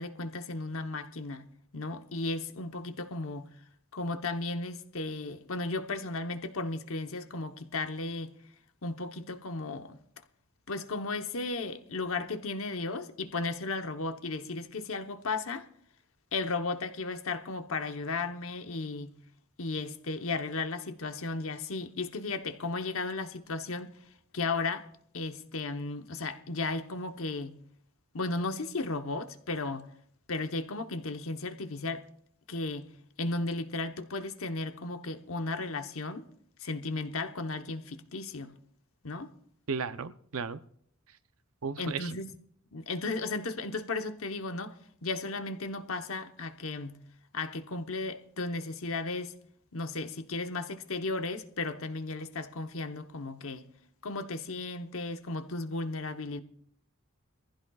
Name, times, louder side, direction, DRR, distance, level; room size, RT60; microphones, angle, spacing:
voice 1, 0.0-1.5 1.7-3.5 3.9-8.3 8.8-10.0 10.7-15.7 16.3-19.2 19.6-23.9 24.3-24.9 25.1-27.6 28.1-29.9 30.3-32.1 32.5-32.9 33.2-36.3 36.6-38.5 39.0-39.3 41.8-42.3 42.7-44.7 45.0-47.0 47.3-49.3 49.7-53.7 54.0-56.4, left 3 dB, 65° left, 1.0 m, -35 dB
voice 2, 39.7-40.6 41.6-42.1, right 5 dB, 75° right, 0.7 m, -34 dB
22.0 x 15.0 x 2.4 m
head